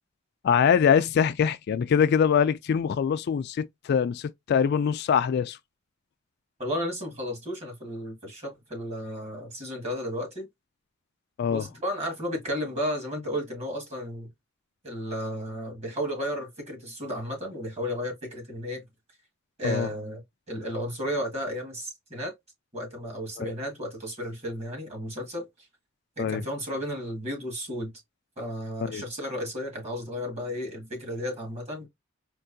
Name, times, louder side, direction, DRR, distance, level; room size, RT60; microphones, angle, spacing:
voice 1, 0.4-5.6 11.4-11.7 19.6-19.9 23.4-23.5 26.2-26.4 28.8-29.0, left 7 dB, 55° left, 0.3 m, -23 dB
voice 2, 6.6-10.5 11.5-14.3 14.8-18.8 19.6-20.2 20.5-22.3 22.7-25.5 26.2-27.9 28.4-31.9, equal, 35° right, 1.7 m, -33 dB
4.5 x 2.4 x 2.6 m
head